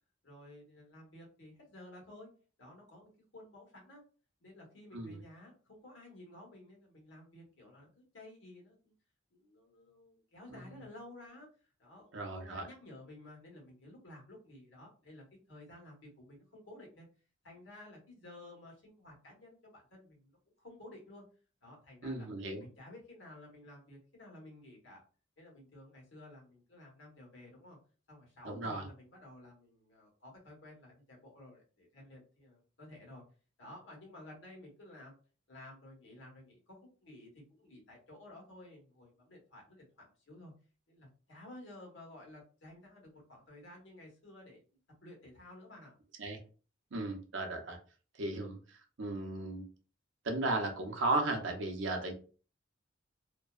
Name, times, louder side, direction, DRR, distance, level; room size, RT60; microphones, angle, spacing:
voice 1, 0.2-2.3 2.6-4.0 4.4-8.9 9.3-11.5 11.8-17.1 17.4-21.2 21.6-22.3 22.6-25.0 25.4-27.8 28.1-33.2 33.6-35.2 35.5-40.5 40.9-44.6 45.0-45.9, left 1 dB, 75° left, -1 dB, 1.1 m, -54 dB
voice 2, 12.1-12.6 22.0-22.6 28.4-28.8 46.2-46.4 46.9-47.8 48.2-49.6 50.2-52.1, right 2 dB, 70° right, 3 dB, 0.6 m, -35 dB
2.6 x 2.2 x 2.3 m, 0.38 s
head